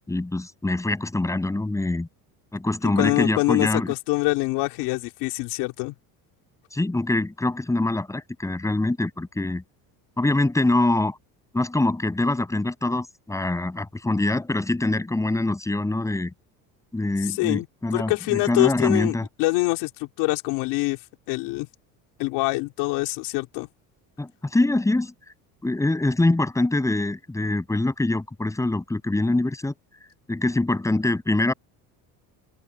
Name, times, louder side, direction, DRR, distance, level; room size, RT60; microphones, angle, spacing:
voice 1, 0.0-2.1 2.5-3.9 6.7-9.6 10.2-11.1 11.5-16.3 16.9-19.3 24.2-25.1 25.6-29.7 30.3-31.5, left 2 dB, 10° left, 7.5 m, -24 dB
voice 2, 3.0-5.9 17.2-17.7 17.9-21.0 21.3-21.7 22.2-23.7, left 22 dB, 80° left, 3.7 m, -25 dB
open air
cardioid pair, 155°, 40 cm